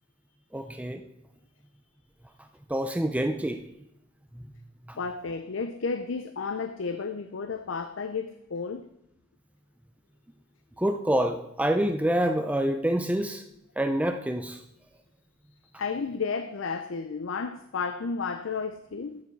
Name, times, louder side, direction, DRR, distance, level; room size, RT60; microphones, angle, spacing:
voice 1, 0.5-1.0 2.7-3.6 4.9-5.0 10.8-13.4 13.8-14.6, right 1 dB, 5° right, 6 dB, 0.5 m, -27 dB
voice 2, 5.0-8.9 15.8-19.2, left 5 dB, 70° left, 9 dB, 0.6 m, -32 dB
13.5 x 7.3 x 4.6 m, 0.82 s
head